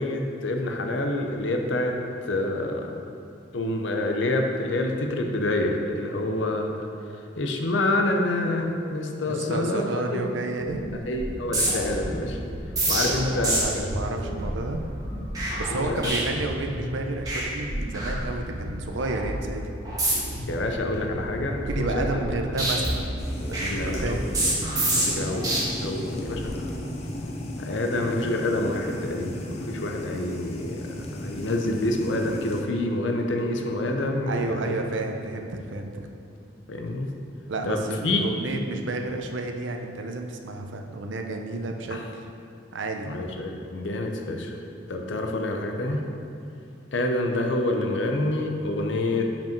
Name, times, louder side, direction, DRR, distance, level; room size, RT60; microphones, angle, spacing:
voice 1, 0.0-2.9 3.5-6.9 7.4-10.2 11.1-12.4 12.9-13.9 15.5-16.0 20.5-22.2 22.5-22.6 23.7-24.3 25.0-26.9 27.6-34.7 36.7-37.1 37.6-38.2 41.9-42.0 43.1-44.6 44.9-46.0 46.9-49.3, left 2 dB, 75° left, 3 dB, 0.7 m, -27 dB
voice 2, 9.3-10.8 13.1-14.8 15.6-19.6 21.5-23.1 23.5-24.2 34.3-36.1 37.5-42.2 42.7-43.1, right 2 dB, 75° right, 4 dB, 0.6 m, -31 dB
sound 1, 10.6-10.9 11.1-16.9 17.2-17.4 17.7-18.6 19.0-19.3 19.8-20.4 20.8-22.3 22.6-25.6 26.1-26.5, right 1 dB, 20° right, 1.4 m, -28 dB
sound 2, 11.9-24.4, equal, 35° right, 1.4 m, -40 dB
sound 3, 23.2-32.6, left 1 dB, 35° left, 0.6 m, -35 dB
5.3 x 5.3 x 5.2 m, 2.7 s
head